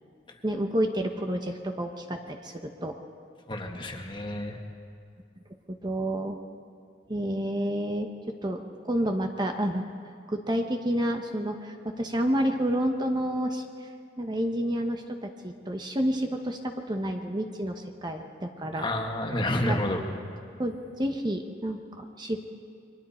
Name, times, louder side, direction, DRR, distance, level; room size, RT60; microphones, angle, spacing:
voice 1, 0.4-2.9 5.7-6.4 7.1-9.8 10.3-13.9 14.2-18.9 19.6-19.8 20.6-22.4, equal, 25° right, 4 dB, 1.0 m, -29 dB
voice 2, 3.5-4.6 18.8-20.0, left 1 dB, 25° left, 2 dB, 1.7 m, -29 dB
29.0 x 23.0 x 4.4 m, 2.3 s
head